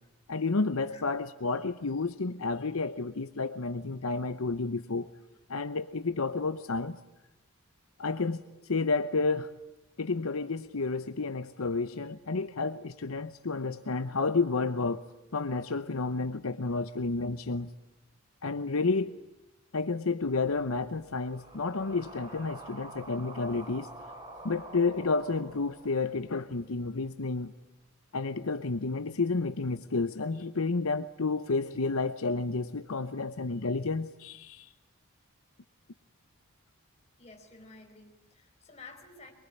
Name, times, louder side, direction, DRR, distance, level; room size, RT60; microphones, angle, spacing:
voice 1, 0.3-5.1 5.5-7.0 8.0-9.5 10.0-15.0 15.3-17.7 18.4-19.1 19.7-23.9 24.4-27.5 28.1-34.7, left 3 dB, 75° left, 10 dB, 0.8 m, -31 dB
sound 1, 20.2-26.3, right 2 dB, 20° right, 5.6 m, -48 dB
voice 2, 37.2-39.3, left 3 dB, 30° left, 2 dB, 4.8 m, -51 dB
23.5 x 23.0 x 9.9 m, 0.98 s
head